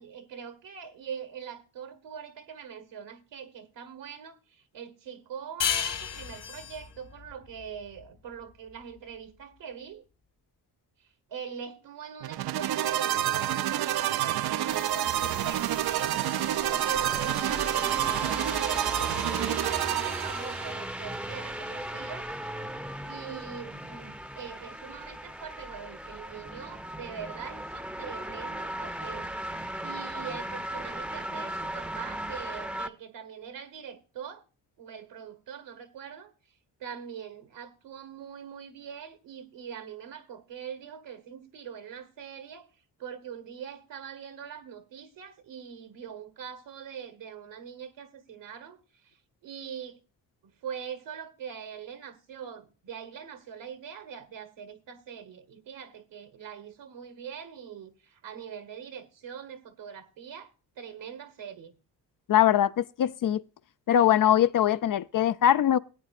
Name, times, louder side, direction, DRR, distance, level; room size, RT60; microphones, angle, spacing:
voice 1, 0.0-10.0 11.0-16.3 16.7-22.3 23.1-34.4 34.8-36.3 36.8-42.7 43.0-49.2 49.4-50.0 50.6-60.5 60.8-61.7, right 7 dB, 75° right, 1.5 m, -43 dB
sound 1, 5.6-8.8, left 8 dB, 65° left, 2.3 m, -33 dB
sound 2, 12.2-20.7, right 12 dB, 60° right, 0.5 m, -28 dB
sound 3, 14.7-32.9, right 1 dB, ahead, 0.7 m, -37 dB
voice 2, 62.3-63.4 63.9-65.8, left 11 dB, 50° left, 0.5 m, -22 dB
18.5 x 8.8 x 2.5 m
supercardioid pair, 60°, 44 cm